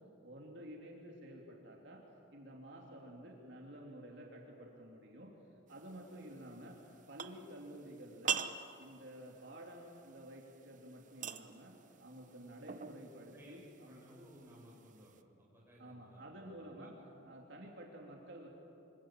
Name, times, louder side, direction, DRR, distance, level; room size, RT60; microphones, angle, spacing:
voice 1, 0.2-2.0 2.3-5.3 5.7-6.8 7.1-8.4 8.8-11.7 12.0-14.0 15.8-16.9 17.2-18.5, right 1 dB, 65° right, -1 dB, 3.1 m, -51 dB
sound 1, 5.7-15.2, right 7 dB, 45° right, 0.9 m, -46 dB
voice 2, 13.3-16.9, equal, 10° right, -3 dB, 6.8 m, -59 dB
25.5 x 25.0 x 7.6 m, 3.0 s
head